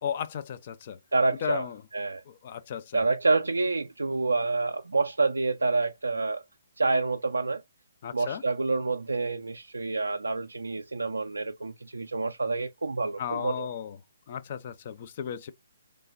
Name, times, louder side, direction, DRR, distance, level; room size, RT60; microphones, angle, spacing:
voice 1, 0.0-1.0 1.4-1.8 2.3-3.1 8.0-8.4 13.2-14.0 14.3-15.5, left 8 dB, 40° left, 0.4 m, -35 dB
voice 2, 1.1-1.7 1.9-2.2 2.9-6.4 6.8-7.6 8.1-13.7, right 3 dB, 75° right, 0.3 m, -28 dB
3.2 x 2.1 x 2.5 m
figure-of-eight pair, 135°, 0 cm